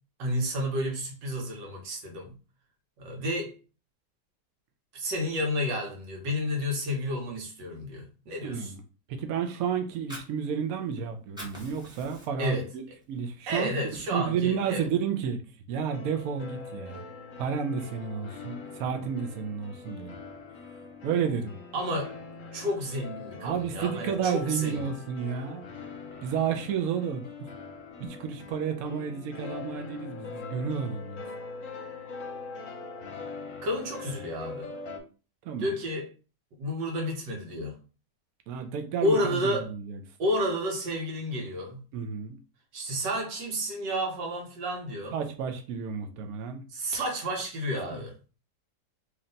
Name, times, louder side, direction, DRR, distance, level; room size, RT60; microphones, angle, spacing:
voice 1, 0.2-2.4 3.0-3.6 4.9-8.7 12.4-12.7 13.5-14.9 21.7-22.1 22.5-24.9 33.6-34.7 35.6-36.1 36.6-37.8 39.0-39.7 40.2-41.8 42.7-45.2 46.7-48.1, equal, 85° right, 1.7 m, -31 dB
voice 2, 8.4-8.8 9.1-12.8 13.1-13.7 14.1-15.4 15.7-17.0 17.4-20.2 21.0-21.6 23.4-25.7 26.2-27.2 28.0-31.2 35.4-35.7 38.5-39.4 39.7-40.0 41.9-42.4 45.1-46.6 47.9-48.0, right 7 dB, 70° right, 0.9 m, -31 dB
Fire, 9.8-11.0 11.2-12.6 13.0-13.2 13.5-14.5, equal, 5° right, 1.2 m, -45 dB
sound 1, 15.9-35.0, left 4 dB, 55° left, 1.0 m, -43 dB
3.2 x 2.8 x 3.8 m
omnidirectional pair, 1.9 m